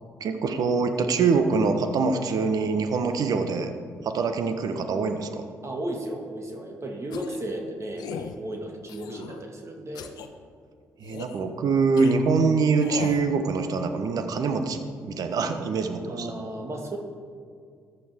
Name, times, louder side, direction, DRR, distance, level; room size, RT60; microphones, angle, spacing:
voice 1, 0.2-3.7 4.0-5.4 11.0-16.3, right 4 dB, 60° right, 8 dB, 1.1 m, -24 dB
voice 2, 5.6-10.1 16.1-17.0, right 1 dB, 40° right, 2 dB, 2.1 m, -34 dB
sound 1, 7.1-7.5 8.0-8.4 8.9-9.4 10.0-10.3 11.0-11.4 12.0-12.1 12.8-13.3, left 7 dB, 70° left, 0.8 m, -37 dB
15.0 x 10.5 x 3.6 m, 2.2 s
hypercardioid pair, 45°, 7 cm